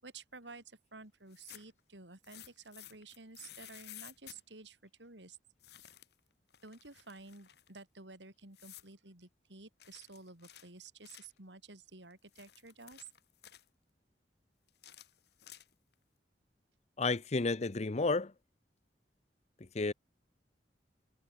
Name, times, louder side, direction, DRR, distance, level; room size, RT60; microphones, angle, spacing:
voice 1, 0.0-5.4 6.6-13.1, right 3 dB, 90° right, 5.3 m, -52 dB
sound 1, 1.2-1.8 2.2-4.4 5.6-6.2 6.5-7.7 8.5-8.9 9.8-11.4 12.1-13.7 14.7-15.9, left 12 dB, 65° left, 2.7 m, -54 dB
voice 2, 17.0-18.3 19.7-19.9, left 3 dB, 40° left, 0.7 m, -31 dB
head